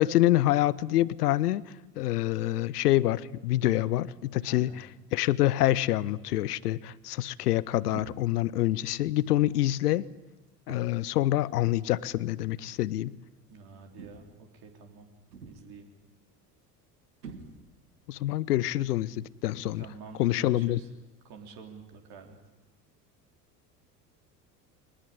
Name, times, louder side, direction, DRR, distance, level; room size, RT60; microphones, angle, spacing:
voice 1, 0.0-1.6 2.0-4.7 5.1-10.0 10.7-13.1 18.1-19.9 20.2-20.8, left 15 dB, 70° left, 21 dB, 0.9 m, -26 dB
voice 2, 4.4-4.9 13.5-15.1 15.4-15.9 19.8-20.9 21.2-22.4, right 5 dB, 50° right, 4 dB, 3.7 m, -48 dB
sound 1, 7.9-8.4 9.3-9.6 10.7-11.2 12.3-12.5 14.0-14.5 15.3-15.8 17.2-17.9, right 4 dB, 80° right, 2.3 m, -47 dB
23.0 x 19.5 x 10.0 m, 1.0 s
figure-of-eight pair, 70°, 48 cm